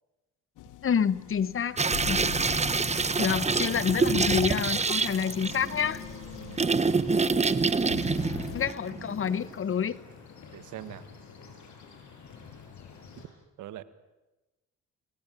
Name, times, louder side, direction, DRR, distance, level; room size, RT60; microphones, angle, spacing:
sound 1, 0.6-8.7, left 14 dB, 90° left, 1.1 m, -43 dB
voice 1, 0.8-1.8 2.1-2.3 3.2-6.0 8.5-10.0, left 7 dB, 45° left, 17 dB, 1.2 m, -28 dB
sound 2, 1.8-9.4, right 4 dB, 20° right, 1.1 m, -27 dB
sound 3, 2.8-13.3, left 5 dB, 70° left, 7.1 m, -49 dB
voice 2, 10.5-11.0 13.6-13.8, right 12 dB, 80° right, 13 dB, 1.7 m, -42 dB
29.5 x 21.5 x 9.2 m, 1.1 s
cardioid pair, 90°, 30 cm